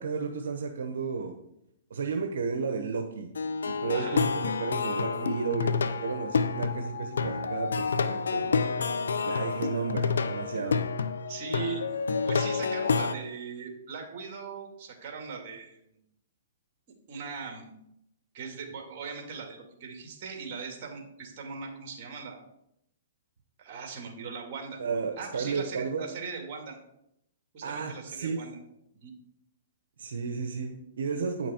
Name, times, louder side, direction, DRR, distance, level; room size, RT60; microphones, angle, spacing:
voice 1, 0.0-1.3 1.9-3.3 3.6-8.5 9.2-10.9 24.8-26.0 27.6-28.4 30.0-31.5, right 5 dB, 80° right, 4 dB, 0.9 m, -33 dB
Plucked string instrument, 3.4-13.2, left 5 dB, 90° left, 0.6 m, -29 dB
voice 2, 11.3-11.8 12.3-15.8 17.1-17.7 18.3-22.4 23.6-24.8 25.2-26.8 27.5-28.6 29.0-29.1, right 5 dB, 45° right, 3 dB, 2.4 m, -39 dB
9.2 x 5.9 x 4.4 m, 0.79 s
hypercardioid pair, 140°, 0 cm